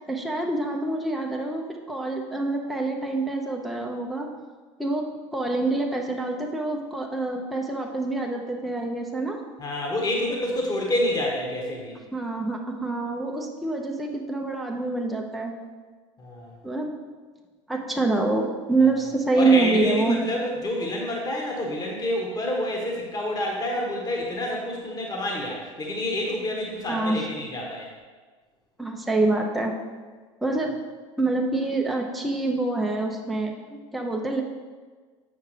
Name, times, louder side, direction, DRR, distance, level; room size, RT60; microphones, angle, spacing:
voice 1, 0.1-1.6 1.9-4.3 4.8-5.0 5.3-9.4 12.1-15.5 16.6-16.9 17.7-20.2 26.9-27.2 28.8-29.7 30.4-30.7 31.2-34.4, right 3 dB, ahead, 0 dB, 0.7 m, -26 dB
voice 2, 9.6-12.0 16.2-16.5 19.3-27.9, left 1 dB, 20° left, -1 dB, 1.4 m, -28 dB
7.7 x 5.6 x 3.3 m, 1.4 s
hypercardioid pair, 80°, 17 cm